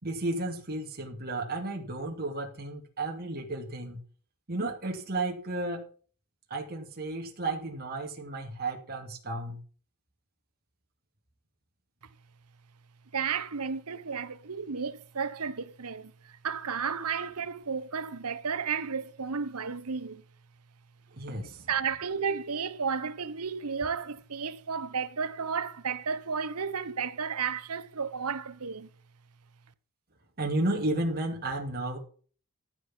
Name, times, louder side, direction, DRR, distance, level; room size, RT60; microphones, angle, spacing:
voice 1, 0.0-4.0 4.5-5.8 6.5-9.6 21.1-21.7 30.4-32.0, right 2 dB, 45° right, 2.7 m, -33 dB
voice 2, 13.1-20.2 21.7-28.9, right 6 dB, 80° right, 1.1 m, -33 dB
15.0 x 6.3 x 7.5 m
head